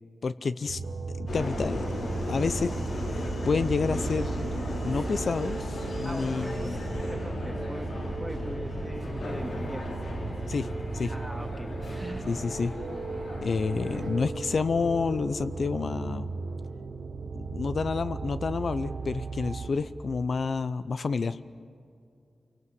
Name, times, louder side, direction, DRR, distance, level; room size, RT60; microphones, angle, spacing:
voice 1, 0.2-0.8 1.2-1.8 2.3-2.7 3.1-4.5 4.8-6.8 10.5-10.7 10.9-11.1 12.3-12.7 13.4-16.3 17.3-21.4, left 4 dB, 60° left, 12 dB, 0.6 m, -29 dB
sound 1, 0.7-19.7, right 3 dB, 90° right, 3.8 m, -36 dB
Subway metro underground, 1.3-14.1, left 1 dB, 90° left, 6.4 m, -36 dB
voice 2, 6.0-9.9 11.1-12.4, right 1 dB, 10° right, 4 dB, 2.3 m, -41 dB
28.0 x 24.0 x 7.8 m, 2.5 s
wide cardioid pair, 135°, 0 cm